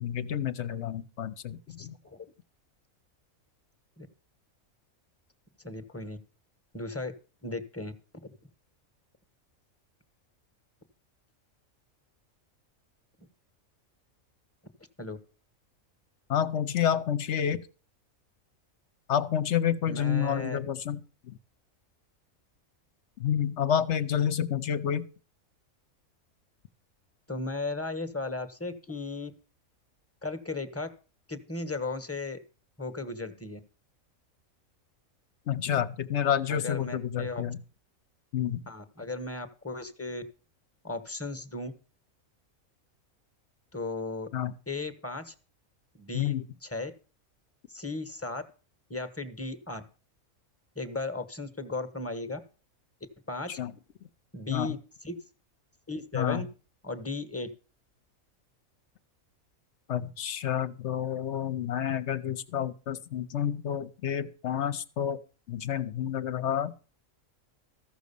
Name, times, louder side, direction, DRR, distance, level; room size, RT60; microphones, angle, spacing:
voice 1, 0.0-2.0 16.3-17.6 19.1-21.4 23.2-25.1 35.5-37.6 38.3-38.6 44.3-44.5 46.1-46.4 53.6-53.7 54.5-54.7 56.1-56.4 59.9-65.2 65.5-66.7, left 9 dB, 60° left, 1.0 m, -29 dB
voice 2, 1.8-2.3 4.0-4.1 5.6-6.2 6.7-7.1 7.4-7.9 15.0-15.2 19.9-20.6 27.3-29.3 30.2-30.9 31.3-32.4 32.8-33.6 36.5-37.4 38.7-40.2 40.8-41.7 43.7-44.3 44.7-45.3 45.9-46.4 46.6-46.9 47.7-48.4 48.9-49.8 50.7-52.4 53.3-53.6 54.3-55.2 55.9-56.5 56.8-57.5, left 2 dB, 10° left, 1.0 m, -36 dB
14.5 x 6.3 x 6.8 m
omnidirectional pair, 1.4 m